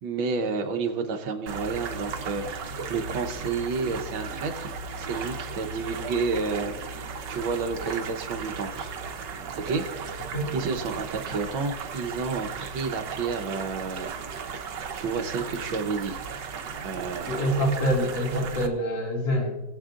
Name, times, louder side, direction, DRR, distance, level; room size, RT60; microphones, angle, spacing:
voice 1, 0.0-4.7 5.0-8.9 9.5-10.3 10.5-14.1 14.5-14.6 14.9-16.2 16.6-17.6, right 4 dB, 85° right, 5 dB, 1.9 m, -31 dB
sound 1, 1.5-18.7, right 5 dB, 70° right, 1.6 m, -36 dB
voice 2, 17.3-19.6, equal, 75° left, -2 dB, 3.1 m, -26 dB
21.0 x 8.0 x 2.5 m, 1.0 s
omnidirectional pair, 2.1 m